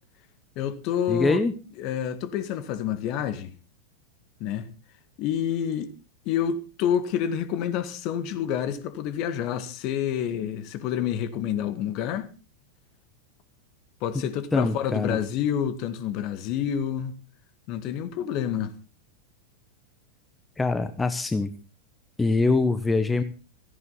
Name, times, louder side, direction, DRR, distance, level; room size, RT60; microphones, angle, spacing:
voice 1, 0.6-1.4 1.8-3.5 4.4-4.7 5.2-5.9 6.3-12.3 14.0-17.2 17.7-18.7, left 9 dB, 40° left, 1.8 m, -28 dB
voice 2, 1.1-1.5 14.5-15.2 20.6-21.5 22.2-23.2, left 3 dB, 10° left, 1.3 m, -24 dB
17.0 x 15.5 x 4.0 m
figure-of-eight pair, 90°, 0 cm